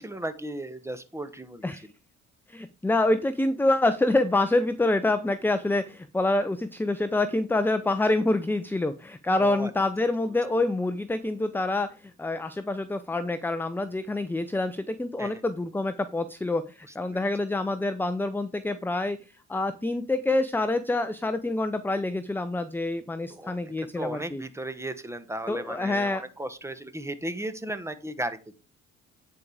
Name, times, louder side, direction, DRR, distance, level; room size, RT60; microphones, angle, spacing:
voice 1, 0.0-1.6 9.4-9.7 15.2-15.4 17.1-17.2 23.3-23.6 24.0-28.4, right 1 dB, 10° right, 11 dB, 1.2 m, -35 dB
voice 2, 2.5-19.2 19.5-24.4 25.5-26.2, left 2 dB, 5° left, 12 dB, 0.6 m, -26 dB
9.5 x 4.9 x 4.9 m, 0.32 s
cardioid pair, 90°, 30 cm